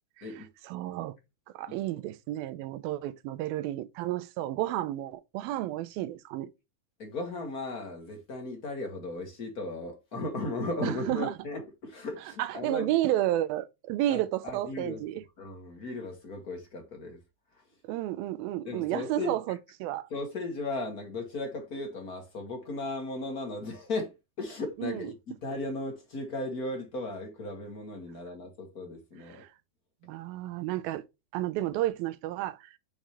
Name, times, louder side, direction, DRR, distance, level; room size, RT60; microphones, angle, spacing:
voice 1, 0.6-1.2 1.5-6.5 10.8-11.3 12.4-15.2 17.8-20.1 24.8-25.1 29.3-29.5 30.0-31.1 31.3-32.8, right 14 dB, 80° right, 2.4 m, -31 dB
voice 2, 7.0-13.0 14.1-15.0 15.4-17.2 17.5-17.6 18.6-19.4 20.1-29.4, left 2 dB, 60° left, 0.9 m, -36 dB
6.7 x 6.3 x 3.1 m
omnidirectional pair, 4.5 m